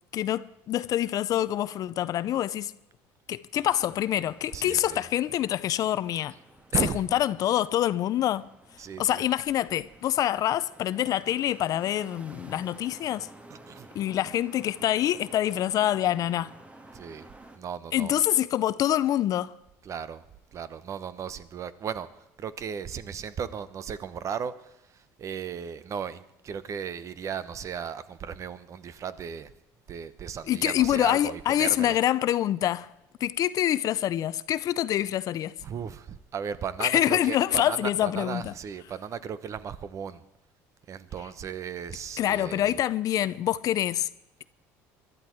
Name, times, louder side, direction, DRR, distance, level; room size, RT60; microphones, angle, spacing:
voice 1, 0.1-2.7 3.3-6.3 6.9-8.5 9.0-13.3 13.9-16.5 17.9-19.6 30.5-32.9 33.2-35.6 36.8-38.5 42.2-44.1, left 12 dB, 55° left, 0.6 m, -26 dB
sound 1, 3.5-17.6, right 2 dB, 15° right, 1.6 m, -52 dB
voice 2, 4.5-5.1 6.7-7.0 8.8-9.3 13.5-13.9 16.9-17.3 17.6-18.2 19.8-20.2 20.5-22.1 22.4-29.5 29.9-32.0 35.6-40.2 40.9-42.8, right 7 dB, 45° right, 1.0 m, -36 dB
21.5 x 12.5 x 4.6 m
supercardioid pair, 90°, 7 cm